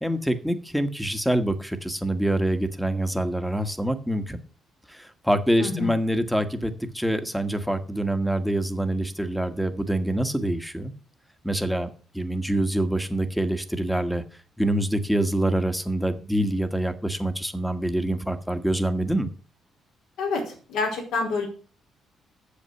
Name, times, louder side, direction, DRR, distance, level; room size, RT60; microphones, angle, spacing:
voice 1, 0.0-4.4 4.9-10.9 11.4-14.2 14.6-19.3, right 1 dB, ahead, 9 dB, 1.4 m, -25 dB
voice 2, 5.6-5.9 20.2-21.5, left 4 dB, 85° left, 0 dB, 4.5 m, -28 dB
8.5 x 7.2 x 7.0 m, 0.40 s
cardioid pair, 90°, 0 cm